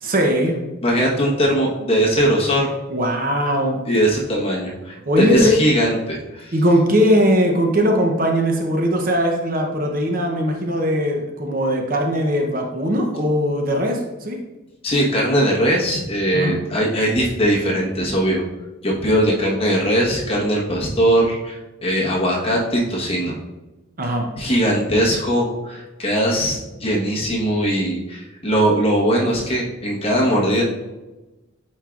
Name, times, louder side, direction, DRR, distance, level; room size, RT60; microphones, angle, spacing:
voice 1, 0.0-0.6 2.9-3.8 5.1-5.5 6.5-14.4 16.3-16.5 24.0-24.3, equal, 45° right, 2 dB, 0.8 m, -19 dB
voice 2, 0.8-2.7 3.8-6.5 14.8-18.4 18.8-23.4 24.3-30.6, equal, 30° left, -3 dB, 1.2 m, -20 dB
9.1 x 4.5 x 2.5 m, 1.1 s
head